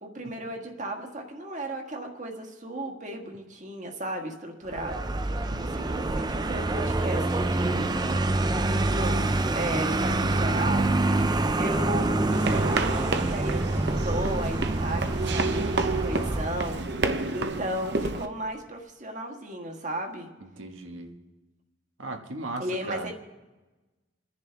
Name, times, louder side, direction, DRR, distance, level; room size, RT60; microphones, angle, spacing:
voice 1, 0.0-8.2 8.9-9.3 9.5-10.8 11.5-20.3 22.6-23.1, right 1 dB, 35° right, 3 dB, 1.7 m, -35 dB
Vehicle, 4.7-16.9, right 2 dB, 20° right, 0.4 m, -26 dB
voice 2, 5.5-5.8 11.1-11.6 17.2-17.6 20.6-21.2 22.0-23.1, right 2 dB, 85° right, 4 dB, 1.6 m, -38 dB
sound 1, 12.3-18.3, right 3 dB, 55° right, 0.9 m, -30 dB
29.0 x 10.5 x 3.5 m, 1.2 s
head